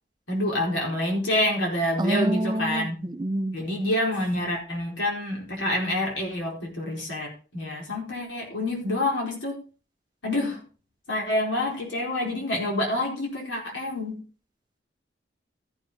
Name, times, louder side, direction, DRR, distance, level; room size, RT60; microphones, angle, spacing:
voice 1, 0.3-3.0 3.5-9.6 10.2-10.7 11.1-14.2, left 1 dB, 80° left, 4.6 m, -27 dB
voice 2, 2.0-3.6, right 1 dB, 25° right, 0.5 m, -27 dB
14.5 x 7.1 x 3.8 m
head